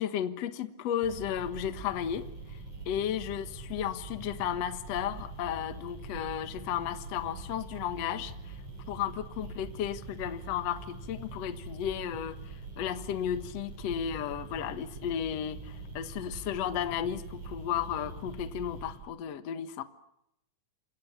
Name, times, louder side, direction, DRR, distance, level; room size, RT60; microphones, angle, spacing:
voice 1, 0.0-2.6 2.9-8.6 8.9-19.8, left 10 dB, 55° left, 10 dB, 2.2 m, -34 dB
sound 1, 1.0-19.0, right 3 dB, 40° right, 8.6 m, -43 dB
29.0 x 25.0 x 7.3 m, 0.78 s
omnidirectional pair, 4.2 m